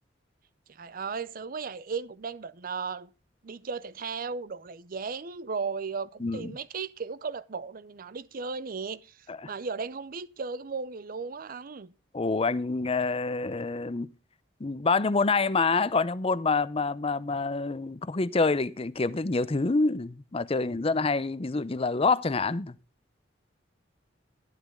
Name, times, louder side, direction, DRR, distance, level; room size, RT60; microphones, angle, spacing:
voice 1, 0.7-3.1 3.4-11.9, right 5 dB, 50° right, 0.6 m, -36 dB
voice 2, 6.2-6.6 9.3-9.5 12.1-14.1 14.6-22.7, left 3 dB, 30° left, 0.6 m, -27 dB
12.5 x 11.5 x 3.7 m
head